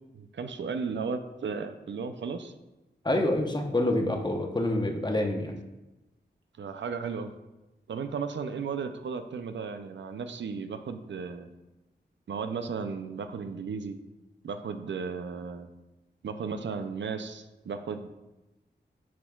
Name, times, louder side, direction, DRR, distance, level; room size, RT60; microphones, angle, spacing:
voice 1, 0.1-2.5 6.6-7.3 7.9-11.5 12.3-14.0 14.4-15.7 16.2-18.1, right 5 dB, 80° right, 8 dB, 0.5 m, -35 dB
voice 2, 3.0-5.6, left 1 dB, 25° left, 3 dB, 0.9 m, -27 dB
10.0 x 4.3 x 2.3 m, 1.0 s
wide cardioid pair, 65°, 19 cm